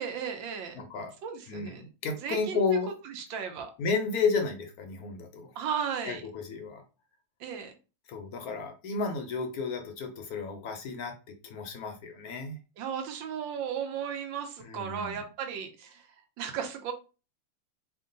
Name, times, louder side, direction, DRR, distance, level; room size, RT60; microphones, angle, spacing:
voice 1, 0.0-0.7 1.2-1.9 2.2-2.6 3.0-3.7 5.6-6.2 7.4-7.8 12.8-16.1 16.4-16.9, right 7 dB, 75° right, 5 dB, 1.5 m, -35 dB
voice 2, 0.7-1.1 1.5-2.9 3.8-5.5 6.0-6.8 8.1-12.6 14.7-15.2, left 4 dB, 65° left, 5 dB, 0.9 m, -32 dB
3.6 x 2.2 x 3.8 m, 0.32 s
omnidirectional pair, 2.1 m